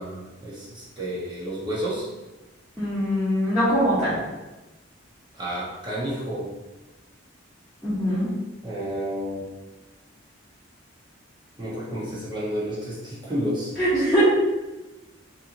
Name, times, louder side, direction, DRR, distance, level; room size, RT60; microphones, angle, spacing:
voice 1, 0.0-2.1 5.3-6.4 8.6-9.4 11.6-13.7, equal, 20° right, -8 dB, 1.0 m, -30 dB
voice 2, 2.8-4.2 7.8-8.3 13.8-14.2, equal, 5° left, -16 dB, 1.3 m, -22 dB
4.4 x 2.9 x 2.6 m, 1.1 s
head